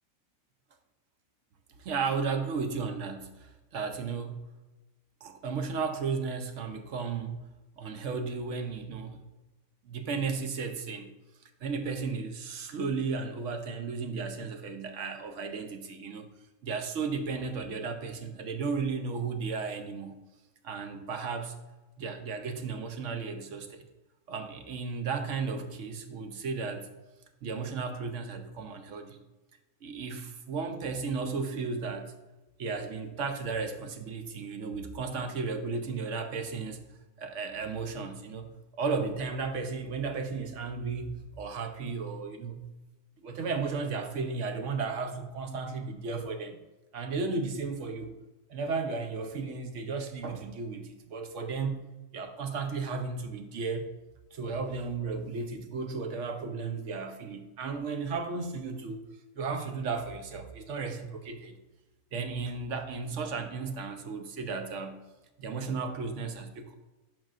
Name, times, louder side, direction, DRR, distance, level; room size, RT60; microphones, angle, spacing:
voice 1, 1.8-3.3 3.7-4.5 5.2-7.4 7.8-9.2 9.8-11.1 11.6-16.3 16.6-20.2 20.6-21.6 22.0-23.8 24.3-26.9 27.4-29.2 29.8-32.1 32.6-36.8 37.2-42.6 43.2-46.6 46.9-48.1 48.5-51.8 52.1-54.0 54.3-59.0 59.3-61.6 62.1-65.0 65.4-66.7, right 4 dB, 65° right, 7 dB, 1.0 m, -34 dB
12.0 x 4.3 x 2.5 m, 1.1 s
omnidirectional pair, 1.4 m